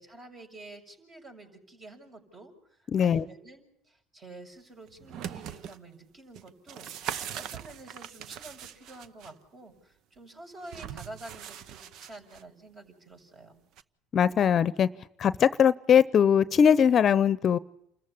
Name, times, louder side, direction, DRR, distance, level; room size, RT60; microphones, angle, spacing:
voice 1, 0.0-13.6, right 2 dB, 40° right, 6.7 m, -49 dB
voice 2, 2.9-3.2 14.1-14.9 15.2-17.6, left 8 dB, 45° left, 0.8 m, -21 dB
sound 1, 4.9-5.8 6.4-9.3 10.6-12.4 13.8-13.9, right 9 dB, 60° right, 0.8 m, -40 dB
28.5 x 14.5 x 8.7 m
hypercardioid pair, 75°, 0 cm